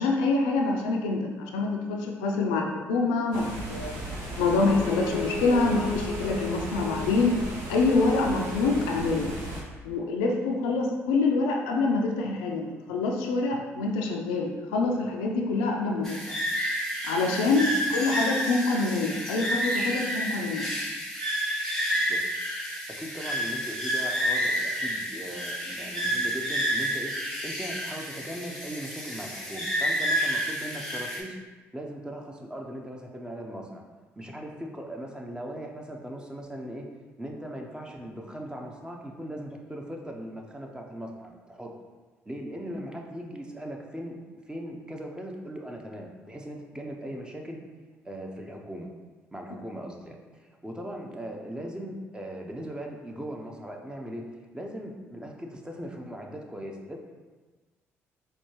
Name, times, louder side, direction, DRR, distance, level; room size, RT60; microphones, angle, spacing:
voice 1, 0.0-4.0 4.4-7.4 7.7-9.3 9.8-16.2 17.0-20.7, left 3 dB, 80° left, 1 dB, 0.4 m, -26 dB
sound 1, 3.3-9.6, right 1 dB, 80° right, 0.8 m, -36 dB
Bowed string instrument, 4.6-8.9, left 4 dB, 45° right, 1.2 m, -38 dB
sound 2, 16.0-31.2, equal, 5° left, 1.0 m, -30 dB
voice 2, 23.0-27.1 27.4-31.4 31.7-33.8 34.2-36.9 37.2-41.7 42.3-44.2 44.5-47.6 48.0-48.9 49.3-57.0, equal, 10° right, 1 dB, 0.7 m, -39 dB
4.3 x 2.3 x 3.0 m, 1.3 s
hypercardioid pair, 50°, 7 cm